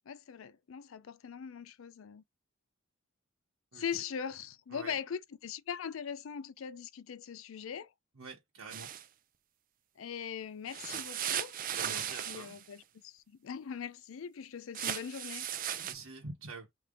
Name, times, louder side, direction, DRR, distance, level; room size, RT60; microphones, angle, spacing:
voice 1, 0.1-2.2 3.7-7.9 10.0-11.6 11.9-15.5, left 7 dB, 70° left, 0.4 m, -41 dB
voice 2, 8.2-8.9 11.7-12.6 15.7-16.7, right 3 dB, 75° right, 1.0 m, -46 dB
sound 1, 8.7-9.0 10.7-12.6 14.7-15.9, right 10 dB, 40° right, 0.5 m, -37 dB
3.4 x 2.8 x 3.7 m
head